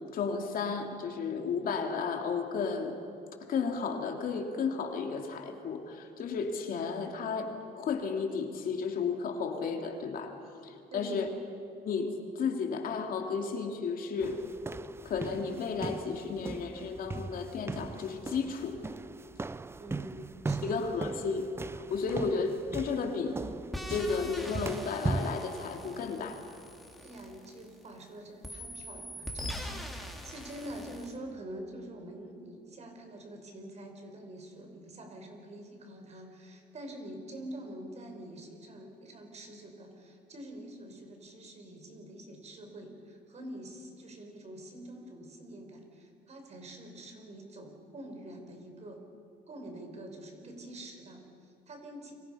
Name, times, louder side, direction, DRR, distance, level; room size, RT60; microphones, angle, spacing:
voice 1, 0.1-3.0 3.5-10.3 10.6-11.3 11.8-12.1 12.4-14.4 15.0-18.8 20.6-21.5 21.9-23.3 23.9-26.4, left 5 dB, 55° left, 3 dB, 2.8 m, -33 dB
voice 2, 10.9-11.3 19.8-20.8 22.2-22.3 27.0-49.0 49.5-52.1, right 1 dB, 40° right, 4 dB, 5.1 m, -46 dB
sound 1, 14.2-25.4, right 3 dB, 15° right, 0.5 m, -39 dB
sound 2, 23.7-28.0 28.4-31.1, equal, ahead, 3.5 m, -42 dB
29.5 x 24.0 x 5.7 m, 2.8 s
cardioid pair, 110°, 17 cm